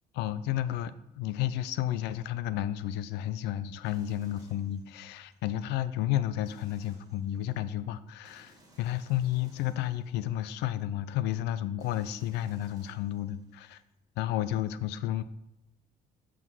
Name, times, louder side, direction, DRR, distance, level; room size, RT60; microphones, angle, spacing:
voice 1, 0.1-13.8 14.2-15.2, left 12 dB, 85° left, 14 dB, 0.5 m, -32 dB
sound 1, 3.8-5.4 6.4-7.6 8.3-10.8 11.8-13.8, right 1 dB, 20° right, 1.8 m, -61 dB
8.0 x 5.0 x 5.4 m, 0.87 s
cardioid pair, 110°, 17 cm